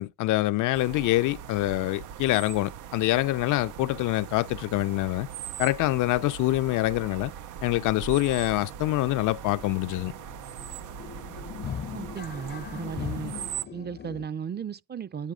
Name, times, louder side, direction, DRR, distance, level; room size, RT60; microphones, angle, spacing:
voice 1, 0.0-5.3 5.6-7.3 7.6-10.1, left 17 dB, 85° left, 0.5 m, -25 dB
sound 1, 0.7-13.7, right 9 dB, 90° right, 0.8 m, -40 dB
sound 2, 7.4-7.5 7.8-8.0 8.2-14.3, left 8 dB, 35° left, 0.5 m, -40 dB
voice 2, 11.9-13.3 13.7-15.3, right 7 dB, 35° right, 0.6 m, -35 dB
10.5 x 9.1 x 4.9 m
cardioid pair, 90°, 30 cm